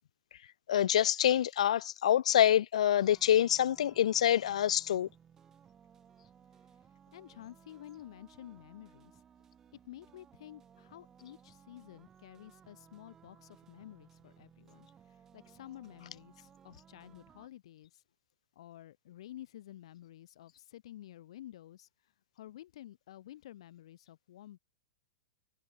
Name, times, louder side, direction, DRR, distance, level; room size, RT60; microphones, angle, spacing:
voice 1, 0.7-5.1, left 10 dB, 70° left, 1.4 m, -26 dB
sound 1, 3.0-17.5, right 8 dB, 15° right, 6.4 m, -61 dB
voice 2, 7.1-9.2 9.8-18.0 18.6-24.6, left 13 dB, 55° left, 7.4 m, -51 dB
supercardioid pair, 170°, 4 cm